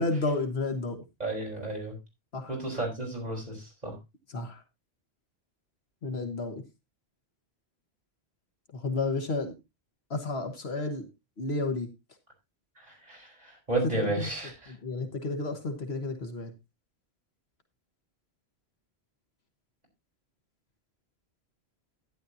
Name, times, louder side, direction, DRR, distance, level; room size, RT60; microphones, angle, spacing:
voice 1, 0.0-1.1 2.3-2.6 4.3-4.6 6.0-6.6 8.7-9.6 10.1-11.1 11.4-11.9 14.0-14.3 14.7-16.5, left 3 dB, 75° left, 5 dB, 1.6 m, -31 dB
voice 2, 1.2-1.9 2.5-4.0 12.8-14.7, right 2 dB, 40° right, -1 dB, 4.9 m, -33 dB
11.5 x 10.5 x 2.7 m, 0.23 s
omnidirectional pair, 1.1 m